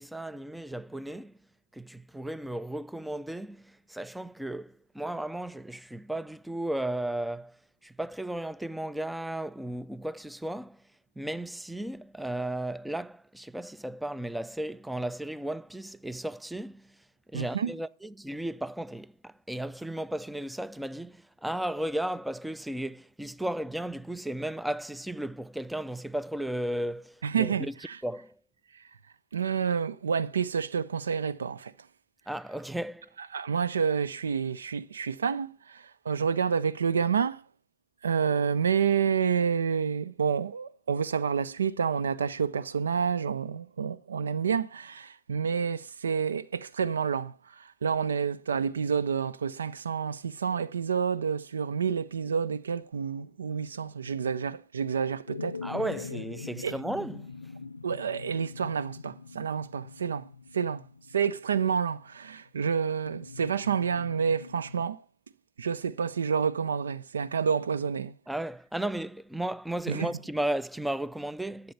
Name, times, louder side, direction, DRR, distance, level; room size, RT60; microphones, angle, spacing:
voice 1, 0.0-1.3 1.7-10.8 11.2-17.0 17.3-27.7 28.0-28.3 32.3-33.1 55.6-57.3 68.3-71.7, right 1 dB, 5° right, 0.5 m, -35 dB
voice 2, 17.3-17.7 27.2-28.0 29.3-31.7 33.3-37.4 38.0-55.6 56.6-56.8 57.8-60.3 60.5-60.8 61.1-65.0 65.6-68.1 69.9-70.1, right 6 dB, 80° right, 0.5 m, -29 dB
sound 1, 55.3-62.1 63.1-64.9, left 4 dB, 90° left, 0.5 m, -43 dB
11.5 x 6.9 x 6.6 m
figure-of-eight pair, 85°, 0 cm